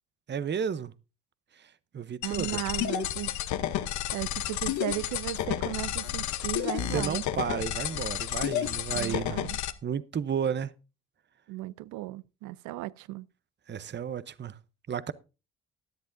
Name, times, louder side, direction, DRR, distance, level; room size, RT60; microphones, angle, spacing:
voice 1, 0.3-0.9 1.6-2.6 6.9-9.4 9.8-10.7 13.7-14.6 14.9-15.1, right 7 dB, 40° right, 0.7 m, -32 dB
sound 1, 2.2-9.7, left 12 dB, 75° left, 0.9 m, -31 dB
voice 2, 2.2-3.4 4.1-7.2 8.9-9.6 11.5-13.3, right 16 dB, 85° right, 0.5 m, -36 dB
16.0 x 10.5 x 2.6 m
supercardioid pair, 60°, 29 cm